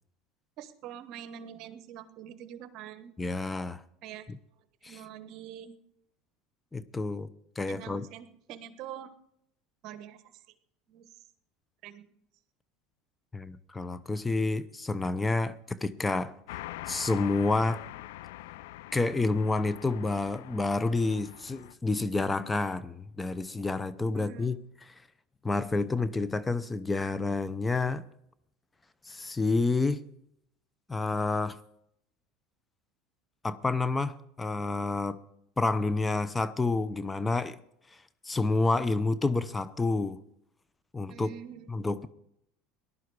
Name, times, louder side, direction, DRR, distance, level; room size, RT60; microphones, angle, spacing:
voice 1, 0.6-3.2 4.0-4.3 4.9-5.8 7.7-9.1 9.8-10.2 10.9-11.1 11.8-12.1 24.1-24.5 41.1-41.7, right 10 dB, 55° right, 12 dB, 1.2 m, -45 dB
voice 2, 3.2-3.8 4.3-4.4 4.8-5.0 6.7-7.3 7.6-8.1 13.3-16.3 16.9-17.8 18.9-24.6 25.4-28.0 29.1-30.0 30.9-31.6 33.4-35.2 35.6-37.6 38.2-40.2 40.9-41.3 41.7-42.1, left 3 dB, 15° left, 15 dB, 0.8 m, -29 dB
sound 1, 16.5-21.7, left 16 dB, 80° left, 0.4 m, -44 dB
18.5 x 11.5 x 4.8 m, 0.76 s
supercardioid pair, 100°, 0 cm